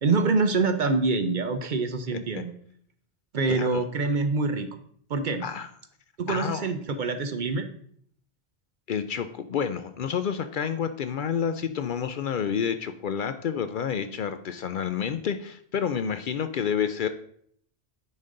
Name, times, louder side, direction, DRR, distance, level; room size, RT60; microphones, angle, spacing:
voice 1, 0.0-2.5 3.3-4.7 5.1-5.4 6.2-7.7, right 3 dB, 55° right, 9 dB, 0.7 m, -25 dB
voice 2, 3.5-3.8 5.4-5.7 6.3-6.7 8.9-17.1, left 7 dB, 60° left, 10 dB, 0.6 m, -29 dB
9.5 x 5.1 x 3.8 m, 0.63 s
omnidirectional pair, 1.1 m